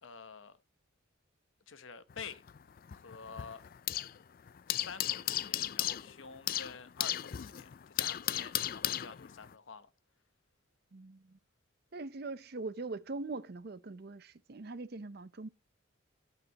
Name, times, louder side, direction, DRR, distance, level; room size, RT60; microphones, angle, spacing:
voice 1, 0.0-0.6 1.7-2.4 2.9-3.6 4.7-9.9, left 5 dB, 75° left, 1.0 m, -48 dB
sound 1, 2.1-4.2 4.5-9.5, left 13 dB, 45° left, 0.3 m, -36 dB
voice 2, 10.9-11.4 11.9-15.5, right 3 dB, 50° right, 0.6 m, -42 dB
8.4 x 7.7 x 2.9 m
head